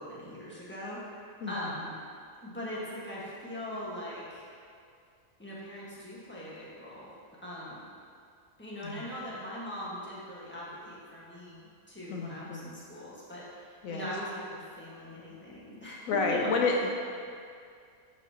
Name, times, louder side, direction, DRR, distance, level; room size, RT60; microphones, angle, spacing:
voice 1, 0.0-2.0 2.4-4.4 5.4-7.1 7.4-7.8 8.6-16.8, equal, 10° left, -8 dB, 1.4 m, -41 dB
voice 2, 12.1-12.7 13.8-14.0 16.1-16.9, left 3 dB, 80° left, 1 dB, 1.0 m, -29 dB
10.5 x 5.2 x 2.9 m, 2.3 s
omnidirectional pair, 1.4 m